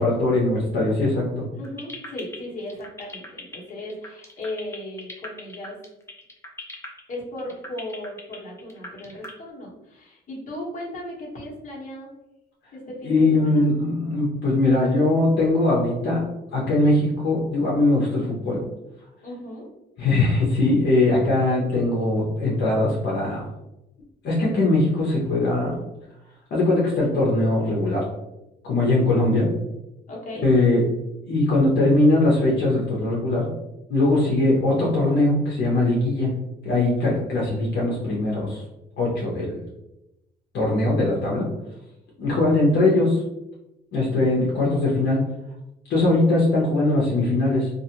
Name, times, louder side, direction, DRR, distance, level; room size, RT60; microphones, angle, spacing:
voice 1, 0.0-1.4 13.0-16.2 16.5-18.6 20.0-23.5 24.2-25.7 26.5-28.0 28.6-29.5 30.4-30.8 31.3-33.5 33.9-36.3 36.6-38.6 39.0-39.6 40.5-41.4 42.2-43.2 43.9-45.2 45.9-47.7, left 2 dB, 70° left, -5 dB, 0.8 m, -21 dB
voice 2, 1.5-5.8 7.1-12.1 12.7-13.7 19.2-19.7 30.1-30.7 42.7-43.1, left 1 dB, 45° left, -5 dB, 1.1 m, -36 dB
sound 1, 1.6-9.3, left 2 dB, 15° left, 0.5 m, -38 dB
2.5 x 2.4 x 2.8 m, 0.93 s
cardioid pair, 120°, 18 cm